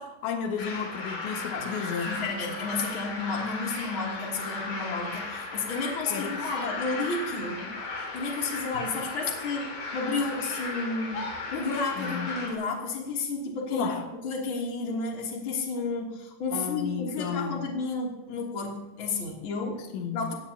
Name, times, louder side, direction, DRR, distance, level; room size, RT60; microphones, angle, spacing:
voice 1, 0.0-2.1 6.1-6.5 12.0-12.3 13.7-14.1 16.5-17.6 19.9-20.2, left 6 dB, 90° left, 4 dB, 3.8 m, -33 dB
sound 1, 0.6-12.5, left 3 dB, 55° left, 5.3 m, -36 dB
voice 2, 2.0-7.8 8.1-11.2 11.5-13.9 14.2-19.8 20.1-20.3, left 3 dB, 35° left, -1 dB, 3.0 m, -32 dB
21.0 x 16.5 x 2.8 m, 1.1 s
omnidirectional pair, 5.0 m